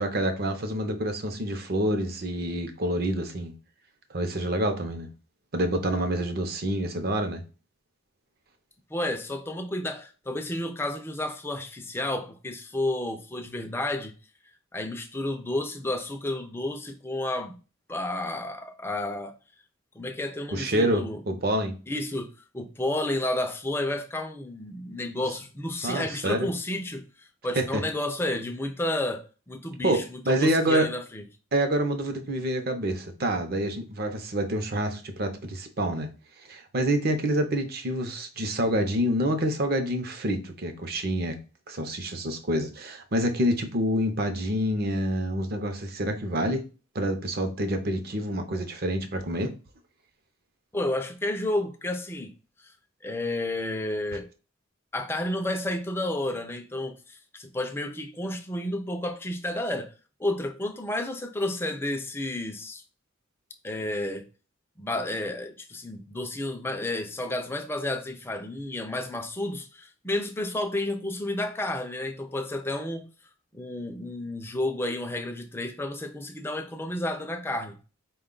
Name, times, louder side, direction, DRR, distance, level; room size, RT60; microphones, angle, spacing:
voice 1, 0.0-3.5 4.1-5.1 5.5-7.4 20.5-21.8 25.8-26.5 27.6-27.8 29.8-30.9 31.5-36.1 36.5-41.4 41.7-46.6 46.9-49.5, right 1 dB, 45° right, 0.6 m, -27 dB
voice 2, 8.9-14.1 14.7-17.5 17.9-19.3 20.0-21.2 21.9-31.2 50.7-52.3 52.6-52.7 53.0-54.3 54.9-59.9 60.2-62.8 63.6-64.3 64.8-73.1 73.5-77.8, left 1 dB, 10° left, 0.4 m, -31 dB
4.6 x 2.3 x 3.8 m
head